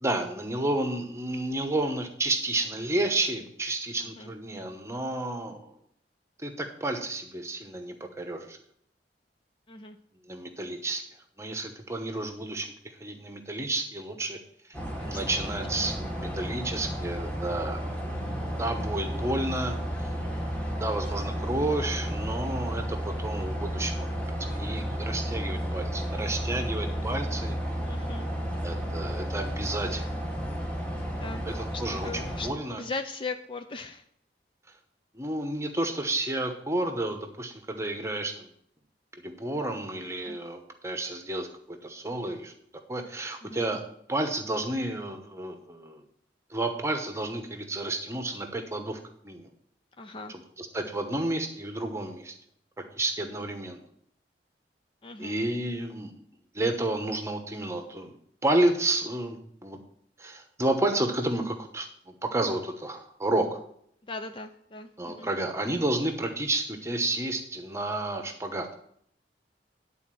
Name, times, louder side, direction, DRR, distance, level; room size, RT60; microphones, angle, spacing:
voice 1, 0.0-5.7 6.4-8.6 10.2-11.0 11.4-14.4 15.0-17.9 18.6-19.8 20.8-24.1 24.4-27.5 28.6-30.0 31.4-32.8 35.1-38.5 39.2-42.5 42.9-43.8 44.1-46.0 46.5-49.5 50.6-52.3 52.9-53.8 55.2-56.1 56.5-58.1 58.4-59.8 60.2-63.6 65.0-68.7, right 2 dB, 15° right, 6 dB, 1.0 m, -31 dB
sound 1, 14.7-32.5, equal, 5° left, 1.6 m, -32 dB
voice 2, 15.0-15.9 18.2-18.6 27.9-28.3 31.0-31.4 31.7-34.0 40.2-40.4 43.4-43.6 50.0-50.3 55.0-55.4 64.0-65.3, left 3 dB, 30° left, 7 dB, 0.5 m, -39 dB
10.5 x 4.2 x 7.6 m, 0.68 s
head